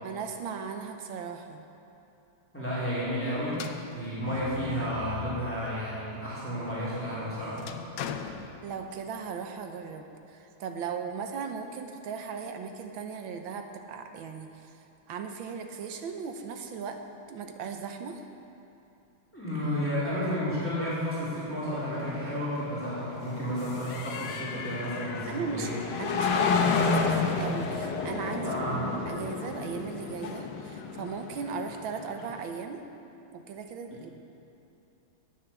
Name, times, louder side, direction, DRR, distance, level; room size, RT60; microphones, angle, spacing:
voice 1, 0.0-1.6 8.6-14.7 15.1-17.0 17.3-18.2 24.5-24.7 25.3-32.8 33.3-34.1, right 6 dB, 75° right, 5 dB, 1.6 m, -37 dB
voice 2, 2.5-3.6 3.9-7.8 19.3-25.8 28.4-28.8, equal, 5° left, -9 dB, 2.8 m, -32 dB
sound 1, 3.5-5.9 6.4-9.2, left 8 dB, 85° left, 0.7 m, -41 dB
sound 2, 21.7-32.4, left 4 dB, 65° left, 1.4 m, -31 dB
10.0 x 8.8 x 7.0 m, 2.8 s
omnidirectional pair, 2.3 m